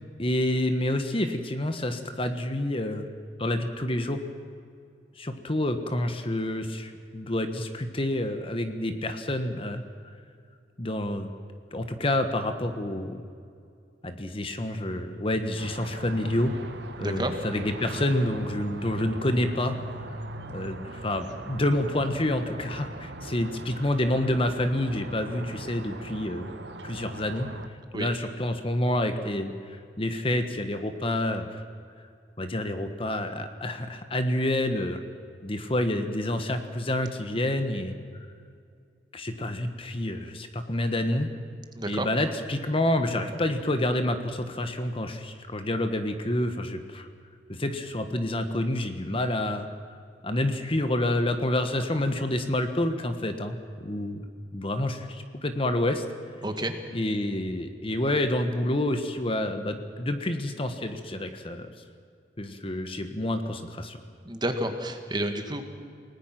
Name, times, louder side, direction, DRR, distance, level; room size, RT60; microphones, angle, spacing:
voice 1, 0.2-3.1 3.4-4.2 5.2-9.8 10.8-11.3 11.7-13.2 14.0-16.5 17.0-19.8 20.0-20.1 20.5-26.5 26.8-27.5 27.9-31.6 32.4-35.0 35.4-38.0 39.1-41.3 41.9-47.1 47.5-49.7 50.2-53.6 53.8-54.2 54.5-56.0 56.9-61.7 62.4-64.0, left 1 dB, 30° left, 8 dB, 1.4 m, -28 dB
sound 1, 15.6-27.7, right 2 dB, 85° right, 1.5 m, -40 dB
voice 2, 17.0-17.3 27.9-28.1 41.7-42.1 56.4-56.7 64.3-65.6, right 1 dB, 25° right, 6 dB, 1.8 m, -30 dB
29.5 x 18.5 x 6.1 m, 2.4 s
head